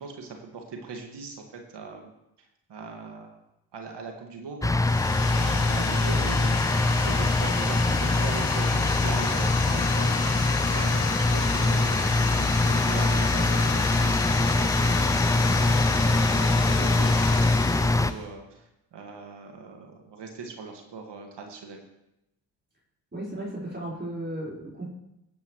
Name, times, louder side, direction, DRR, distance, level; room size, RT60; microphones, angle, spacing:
voice 1, 0.0-2.1 2.7-3.4 3.7-4.7 5.3-6.6 6.9-10.4 10.7-12.1 12.4-21.8, right 4 dB, 55° right, 2 dB, 2.0 m, -40 dB
sound 1, 4.6-18.1, left 2 dB, 5° left, 0.5 m, -23 dB
sound 2, 4.7-18.2, left 5 dB, 80° left, 1.9 m, -32 dB
voice 2, 23.1-24.8, right 1 dB, 20° right, -5 dB, 4.7 m, -35 dB
17.5 x 9.5 x 3.2 m, 0.87 s
hypercardioid pair, 45°, 50 cm